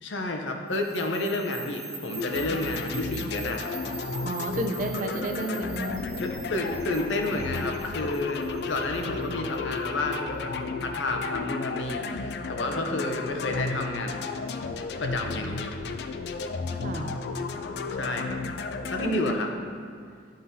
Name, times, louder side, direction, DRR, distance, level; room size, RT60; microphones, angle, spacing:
voice 1, 0.0-3.7 6.2-10.5 10.8-14.2 15.0-15.7 17.9-18.4 18.9-19.5, left 2 dB, 90° left, 3 dB, 0.7 m, -30 dB
sound 1, 0.7-9.8, right 5 dB, 65° right, 1.1 m, -44 dB
sound 2, 2.2-19.3, left 4 dB, 60° left, 0.3 m, -33 dB
voice 2, 4.2-6.1 16.7-17.1 19.0-19.4, right 2 dB, 45° right, 4 dB, 0.5 m, -31 dB
10.5 x 3.7 x 2.7 m, 2.2 s
head